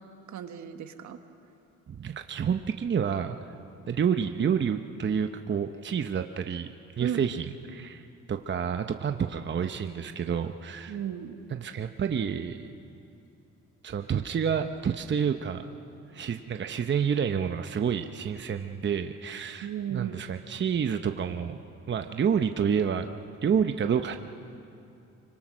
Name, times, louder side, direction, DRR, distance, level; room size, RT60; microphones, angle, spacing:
voice 1, 0.3-1.2 7.0-7.2 10.9-11.4 19.6-20.1, right 10 dB, 70° right, 7 dB, 1.5 m, -34 dB
voice 2, 1.9-3.4 3.9-11.0 11.5-12.7 13.8-15.6 16.1-21.6 21.9-23.1 23.4-24.2, right 7 dB, 40° right, 7 dB, 0.9 m, -29 dB
25.5 x 24.5 x 6.3 m, 2.8 s
cardioid pair, 90°, 30 cm